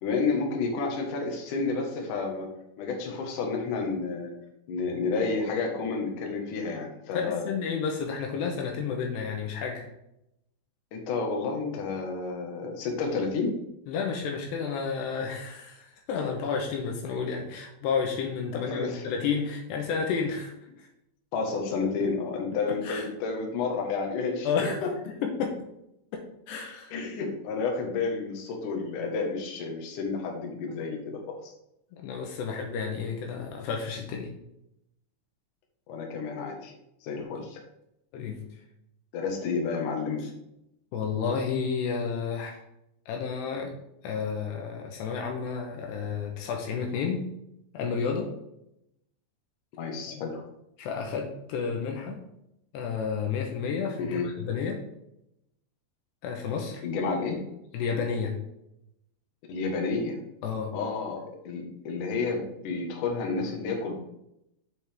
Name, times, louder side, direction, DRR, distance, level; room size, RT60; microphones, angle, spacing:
voice 1, 0.0-2.5 2.8-4.3 4.7-7.5 10.9-13.6 18.5-19.1 21.3-24.9 26.9-31.5 35.9-36.7 37.0-37.6 39.1-40.3 49.8-50.4 54.0-54.3 56.8-57.4 59.5-60.2 60.7-63.9, left 4 dB, 60° left, 1 dB, 2.5 m, -30 dB
voice 2, 7.1-9.9 13.9-20.9 22.7-23.0 24.4-24.8 25.2-25.6 26.5-26.9 31.9-34.3 37.3-37.4 38.1-38.4 40.9-42.6 43.1-43.7 44.0-47.3 47.7-48.3 50.1-50.2 50.8-52.2 52.7-54.8 56.2-56.8 57.7-58.4 60.4-60.7, left 6 dB, 75° left, 2 dB, 3.0 m, -31 dB
7.7 x 7.6 x 3.5 m, 0.82 s
omnidirectional pair, 5.1 m